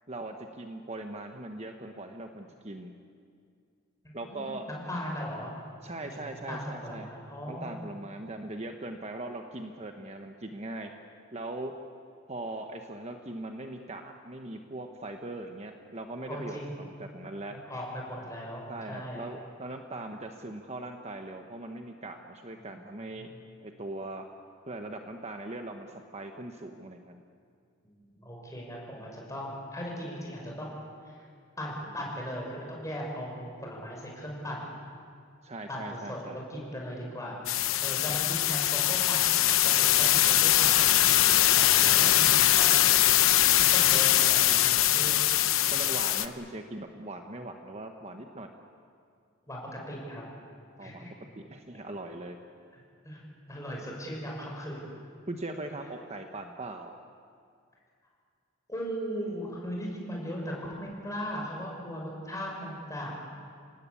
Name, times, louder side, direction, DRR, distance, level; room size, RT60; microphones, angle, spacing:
voice 1, 0.1-2.9 4.1-4.7 5.8-7.1 7.5-10.9 11.3-11.8 12.3-17.6 18.7-23.3 23.6-24.2 24.7-27.2 35.4-36.4 41.8-42.3 45.7-48.5 50.8-52.4 55.3-56.9, right 2 dB, 30° right, 4 dB, 1.2 m, -40 dB
voice 2, 4.0-5.5 6.0-7.7 16.2-16.7 17.5-19.3 22.6-22.8 23.1-23.3 27.8-30.7 31.0-31.3 31.6-34.7 35.7-42.9 43.6-45.2 49.5-50.2 50.8-51.1 52.7-53.2 53.5-54.9 58.7-63.1, equal, 15° left, -2 dB, 6.0 m, -38 dB
sound 1, 37.5-46.3, left 13 dB, 80° left, 0.9 m, -22 dB
28.0 x 18.5 x 8.5 m, 2.3 s
head